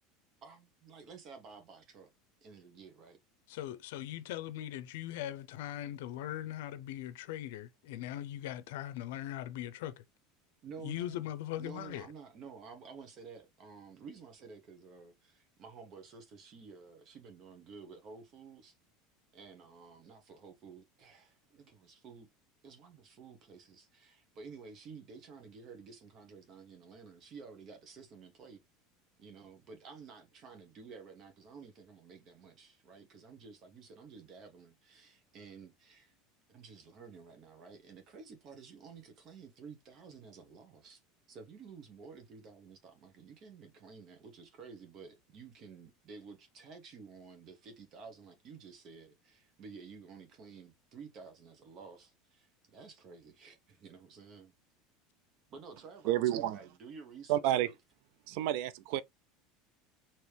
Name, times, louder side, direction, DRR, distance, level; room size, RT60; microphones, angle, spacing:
voice 1, 0.4-2.1 2.4-3.2 10.6-11.3 11.6-18.8 19.3-22.3 22.6-28.6 29.2-36.1 36.5-41.0 41.3-54.5 55.5-57.7, right 5 dB, 35° right, 1.1 m, -52 dB
voice 2, 3.5-10.0 10.8-12.1, left 12 dB, 80° left, 0.6 m, -40 dB
voice 3, 56.1-56.6 57.3-57.7 58.3-59.0, right 13 dB, 65° right, 0.4 m, -30 dB
4.7 x 3.0 x 3.3 m
supercardioid pair, 150°, 0 cm